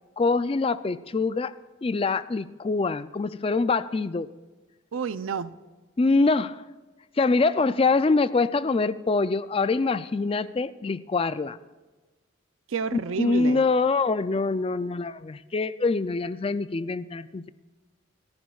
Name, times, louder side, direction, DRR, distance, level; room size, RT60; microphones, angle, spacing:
voice 1, 0.2-1.5 1.8-4.3 6.0-6.6 7.2-11.6 13.2-17.5, left 3 dB, 30° left, 14 dB, 0.3 m, -24 dB
voice 2, 4.9-5.5 12.7-13.6, right 5 dB, 85° right, 14 dB, 0.5 m, -30 dB
27.0 x 10.5 x 2.4 m, 1.2 s
head